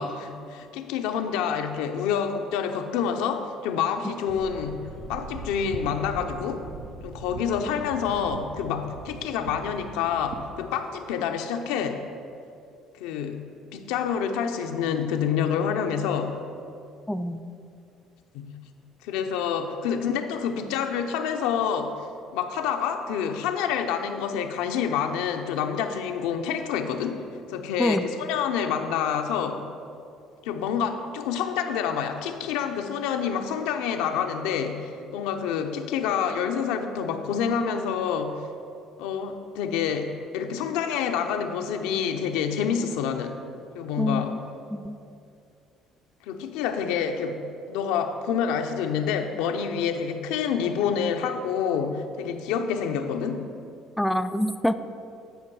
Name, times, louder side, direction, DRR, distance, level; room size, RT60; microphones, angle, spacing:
voice 1, 0.0-6.6 7.0-12.0 13.0-13.4 13.7-16.4 18.3-18.6 19.0-22.1 22.3-27.2 27.5-29.7 30.4-38.5 39.0-43.4 43.7-44.4 46.2-53.5, left 7 dB, 85° left, 6 dB, 0.6 m, -28 dB
sound 1, 4.3-10.4, right 3 dB, 65° right, 0.7 m, -40 dB
voice 2, 17.1-17.4 27.8-28.0 44.0-44.4 44.7-45.0 54.0-54.7, equal, 5° left, 9 dB, 0.4 m, -25 dB
10.5 x 5.0 x 4.7 m, 2.5 s
supercardioid pair, 80°, 0 cm